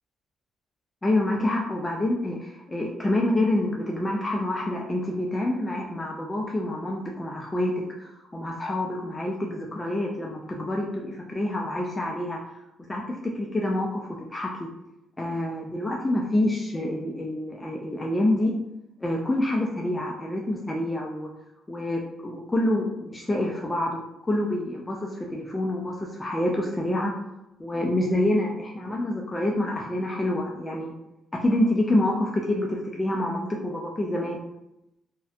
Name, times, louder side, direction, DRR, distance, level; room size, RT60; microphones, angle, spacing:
voice 1, 1.0-12.4 12.9-14.7 15.2-18.5 19.0-21.3 21.7-24.0 24.3-27.1 27.6-30.9 31.3-34.4, left 1 dB, 15° left, -1 dB, 0.3 m, -27 dB
2.6 x 2.1 x 2.4 m, 0.89 s
cardioid pair, 90°, 0 cm